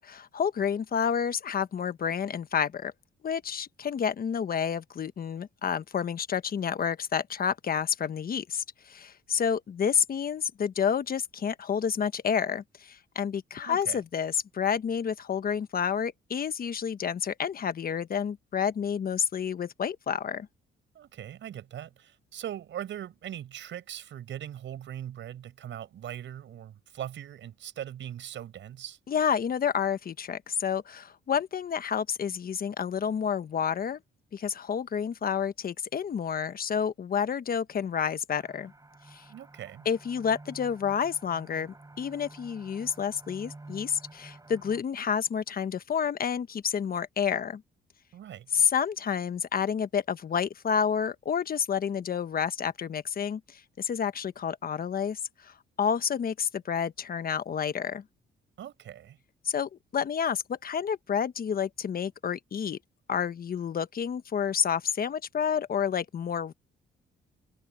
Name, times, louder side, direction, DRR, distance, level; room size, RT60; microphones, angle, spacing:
voice 1, 0.0-2.9 3.2-20.5 29.1-34.0 34.3-38.7 39.1-39.2 39.8-47.6 48.5-58.0 59.4-62.8 63.1-66.5, left 7 dB, 50° left, 1.2 m, -29 dB
voice 2, 13.6-14.0 20.9-29.0 39.3-39.9 48.1-48.6 58.6-59.2, right 11 dB, 70° right, 6.1 m, -40 dB
sound 1, 38.3-44.8, right 2 dB, 15° right, 7.4 m, -50 dB
cardioid pair, 90°, 20 cm